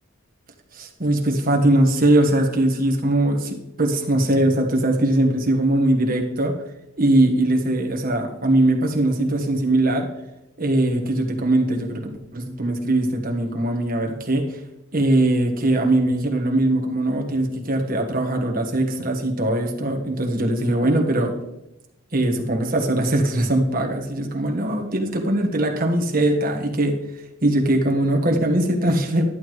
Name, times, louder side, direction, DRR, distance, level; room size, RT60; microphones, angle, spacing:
voice 1, 0.7-6.6 7.0-10.1 10.6-14.6 14.9-21.4 22.1-27.0 27.4-29.2, right 1 dB, 40° right, 1 dB, 1.4 m, -21 dB
11.5 x 9.4 x 3.2 m, 0.89 s
head